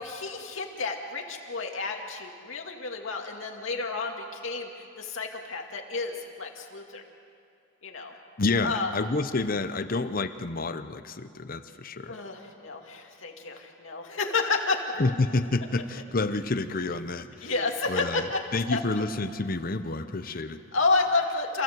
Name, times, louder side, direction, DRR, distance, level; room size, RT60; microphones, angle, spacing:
voice 1, 0.0-7.0 7.8-8.1 8.6-8.9 12.1-14.9 17.4-18.4 18.7-18.8 20.7-21.6, left 3 dB, 85° left, 1 dB, 2.4 m, -30 dB
voice 2, 8.4-12.1 15.0-17.5 17.9-20.6, left 3 dB, 45° left, 11 dB, 0.8 m, -29 dB
28.0 x 15.5 x 7.8 m, 2.5 s
head